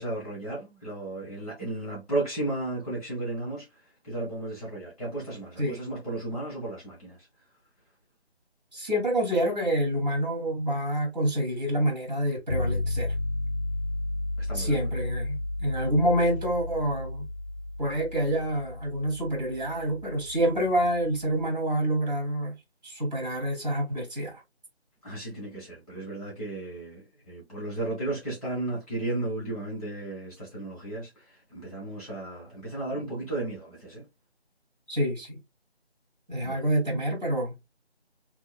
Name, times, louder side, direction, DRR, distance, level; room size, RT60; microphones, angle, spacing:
voice 1, 0.0-3.6 4.0-7.2 14.4-14.9 25.0-34.0 36.4-36.6, right 2 dB, ahead, 2.5 m, -34 dB
voice 2, 8.7-13.1 14.5-17.3 17.8-22.5 22.8-24.3 34.9-35.4 36.3-37.5, right 1 dB, 40° right, 2.9 m, -27 dB
sound 1, 12.5-21.5, left 2 dB, 55° left, 0.8 m, -33 dB
5.9 x 3.0 x 2.3 m
figure-of-eight pair, 170°, 33 cm